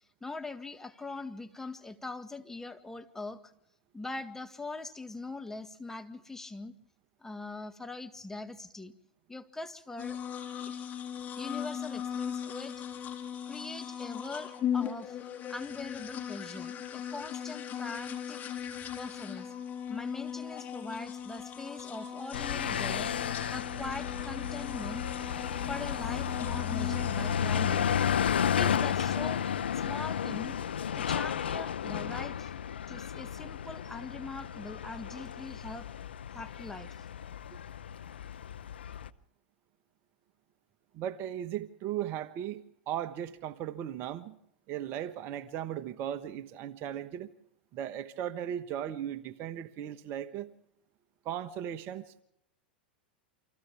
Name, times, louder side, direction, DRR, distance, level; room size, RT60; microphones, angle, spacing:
voice 1, 0.0-3.5 3.9-6.7 7.2-8.9 9.3-10.2 10.6-10.9 11.4-12.8 13.4-15.2 15.5-18.4 19.0-19.5 19.9-23.1 23.5-25.0 25.7-28.0 28.5-29.4 29.7-30.6 30.9-32.5 32.9-35.9 36.3-36.9, left 3 dB, 5° left, 1.8 m, -42 dB
sound 1, 10.0-27.3, left 9 dB, 30° left, 4.0 m, -39 dB
sound 2, 22.3-39.1, left 8 dB, 85° left, 0.8 m, -33 dB
voice 2, 40.9-44.3 44.7-47.3 47.7-50.5 51.2-52.2, right 10 dB, 45° right, 1.3 m, -37 dB
29.0 x 25.0 x 3.5 m
hypercardioid pair, 105°, 6 cm